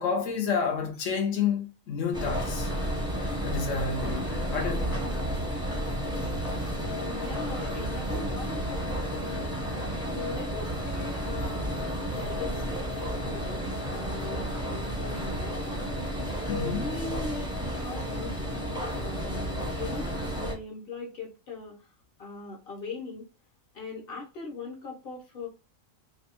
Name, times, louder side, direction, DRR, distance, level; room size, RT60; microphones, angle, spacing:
voice 1, 0.0-2.7 3.4-5.0 16.5-16.9, left 6 dB, 70° left, 1.0 m, -30 dB
sound 1, 2.1-20.5, equal, 5° right, 0.6 m, -32 dB
voice 2, 6.7-9.6 10.0-13.6 13.9-15.8 16.4-21.9 22.2-23.3 23.7-25.5, left 3 dB, 55° left, 0.8 m, -40 dB
2.7 x 2.3 x 2.8 m
omnidirectional pair, 1.4 m